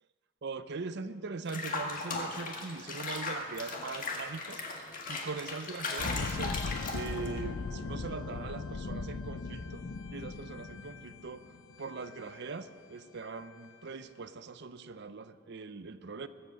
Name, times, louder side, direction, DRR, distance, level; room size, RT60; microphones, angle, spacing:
voice 1, 0.4-4.6 5.1-6.6 6.9-9.8 10.1-11.4 11.8-16.3, right 4 dB, 55° right, 12 dB, 0.6 m, -41 dB
Water / Bathtub (filling or washing), 1.5-7.4, left 3 dB, 40° left, 1.7 m, -37 dB
sound 1, 6.0-12.2 12.5-12.6, left 4 dB, 70° left, 0.5 m, -38 dB
21.0 x 8.0 x 6.4 m, 2.4 s
head